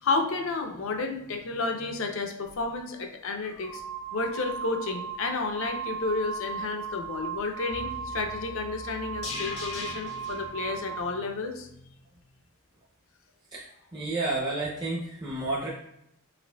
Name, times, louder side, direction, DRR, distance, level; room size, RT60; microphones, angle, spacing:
voice 1, 0.0-3.8 4.1-11.7, left 3 dB, 60° left, 4 dB, 0.5 m, -31 dB
sound 1, 2.5-2.6 3.4-11.1, right 5 dB, 80° right, 0.6 m, -37 dB
sound 2, 7.7-11.9 12.2-12.3, left 2 dB, 85° left, 1.4 m, -41 dB
voice 2, 13.9-15.7, right 2 dB, 20° right, -6 dB, 0.6 m, -30 dB
5.0 x 2.6 x 2.2 m, 0.80 s
head